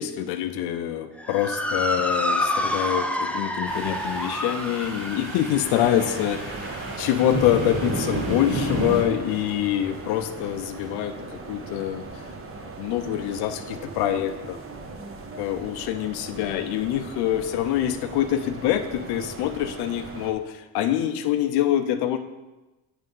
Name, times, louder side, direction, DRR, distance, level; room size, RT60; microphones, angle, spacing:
voice 1, 0.0-12.1 12.6-14.6 15.4-22.2, left 11 dB, 85° left, 8 dB, 0.6 m, -25 dB
Motor vehicle (road) / Siren, 1.2-9.8, left 1 dB, 5° left, 0.5 m, -30 dB
sound 1, 3.6-9.0, right 1 dB, 75° right, 1.9 m, -31 dB
sound 2, 5.6-20.3, right 3 dB, 35° right, 1.0 m, -39 dB
8.9 x 3.3 x 5.4 m, 1.1 s
cardioid pair, 80°, 38 cm